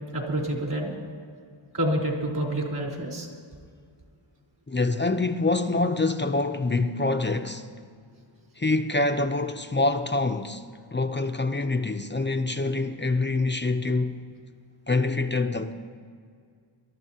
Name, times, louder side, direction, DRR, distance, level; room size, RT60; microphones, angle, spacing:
voice 1, 0.1-0.9 1.7-3.3, right 1 dB, 50° right, 4.2 m, -28 dB
voice 2, 4.7-7.7 8.6-10.7 10.9-14.2 14.9-15.7, left 3 dB, 20° left, 0.7 m, -25 dB
26.0 x 13.0 x 2.9 m
wide cardioid pair, 65°, 50 cm